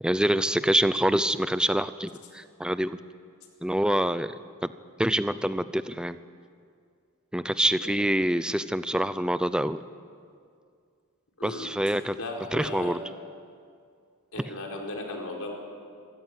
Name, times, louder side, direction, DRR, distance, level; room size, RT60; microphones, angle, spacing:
voice 1, 0.0-3.0 3.6-4.3 5.0-6.2 7.3-9.8 11.4-12.2 12.5-13.0, right 1 dB, 5° right, 13 dB, 0.6 m, -26 dB
voice 2, 11.4-12.9 14.3-15.5, left 2 dB, 75° left, 1 dB, 4.5 m, -37 dB
26.0 x 16.5 x 9.9 m, 2.3 s
head